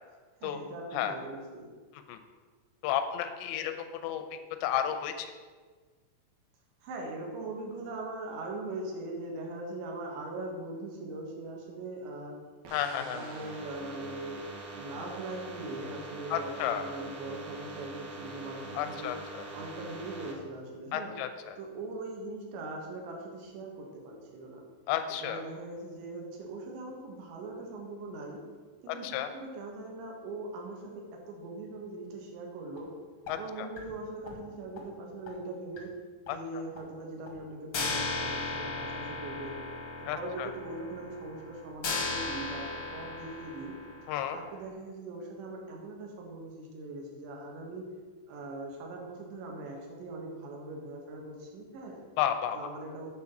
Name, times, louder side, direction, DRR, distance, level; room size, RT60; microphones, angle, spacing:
voice 1, 0.4-1.7 6.8-12.4 12.9-14.5 14.7-19.2 19.5-21.2 21.6-24.6 25.2-28.4 28.8-32.9 33.3-35.9 36.3-39.6 40.0-43.7 44.3-47.8 48.3-52.0 52.5-53.1, right 2 dB, 75° right, 0 dB, 3.7 m, -41 dB
voice 2, 2.8-5.3 12.7-13.2 16.3-16.8 18.7-19.5 20.9-21.6 24.9-25.4 28.9-29.3 33.3-33.7 36.3-36.4 40.1-40.5 44.1-44.4 52.2-52.6, left 10 dB, 80° left, 7 dB, 2.8 m, -32 dB
sound 1, 12.6-20.3, right 2 dB, 60° right, 1.9 m, -44 dB
sound 2, 32.8-32.9 33.3-33.4 33.8-33.9 34.3-34.4 34.8-34.9 35.3-35.4 35.8-35.9 36.3-36.4 36.8-36.9 37.3-37.4 37.7-44.4, left 3 dB, 60° left, 1.2 m, -36 dB
9.9 x 4.3 x 7.1 m, 1.4 s
omnidirectional pair, 5.2 m